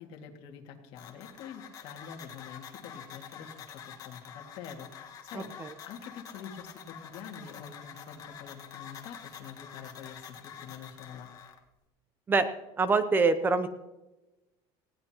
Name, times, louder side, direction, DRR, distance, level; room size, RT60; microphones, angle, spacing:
voice 1, 0.0-11.3, left 7 dB, 55° left, 3 dB, 2.2 m, -46 dB
sound 1, 1.0-11.6, left 8 dB, 35° left, 1.6 m, -47 dB
voice 2, 12.8-13.7, right 4 dB, 20° right, 11 dB, 0.6 m, -24 dB
19.0 x 16.5 x 3.0 m, 1.0 s
cardioid pair, 155°, 11 cm